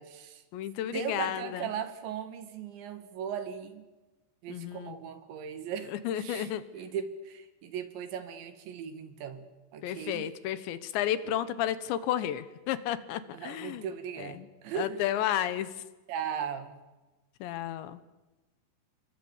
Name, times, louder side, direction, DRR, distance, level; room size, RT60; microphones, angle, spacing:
voice 1, 0.0-0.4 0.9-3.8 4.4-10.3 11.2-11.3 13.3-15.1 16.1-16.7, right 7 dB, 70° right, 10 dB, 4.2 m, -38 dB
voice 2, 0.5-1.6 4.5-4.9 6.0-6.6 9.8-13.9 14.2-14.5 14.8-15.7 17.4-18.0, left 11 dB, 75° left, 14 dB, 3.2 m, -32 dB
27.5 x 23.0 x 7.2 m, 1.1 s
omnidirectional pair, 5.4 m